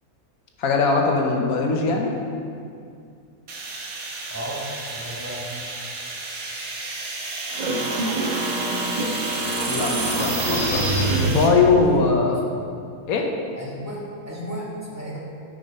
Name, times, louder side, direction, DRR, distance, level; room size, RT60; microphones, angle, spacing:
voice 1, 0.6-2.1 9.7-10.9 11.2-12.4 13.1-13.3, left 4 dB, 70° left, 1 dB, 1.4 m, -21 dB
sound 1, 3.5-11.5, right 3 dB, 90° right, 1.5 m, -32 dB
voice 2, 4.3-4.6 4.9-5.4 11.7-12.4 13.6-15.2, equal, 10° right, -6 dB, 1.6 m, -34 dB
sound 2, 7.5-11.8, right 2 dB, 35° right, 1.0 m, -25 dB
9.2 x 5.3 x 5.3 m, 2.4 s
omnidirectional pair, 1.6 m